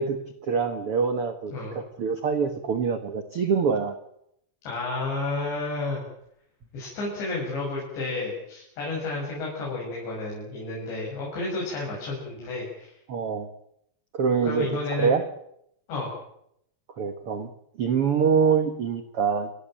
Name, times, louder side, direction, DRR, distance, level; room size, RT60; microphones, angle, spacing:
voice 1, 0.0-4.0 13.1-13.5 14.1-15.2 17.0-17.5 17.8-19.5, right 6 dB, 75° right, 8 dB, 1.3 m, -25 dB
voice 2, 4.6-6.0 6.7-12.9 14.4-15.1 15.9-16.1, left 2 dB, 80° left, -4 dB, 8.9 m, -31 dB
29.5 x 14.5 x 9.0 m, 0.74 s
omnidirectional pair, 5.0 m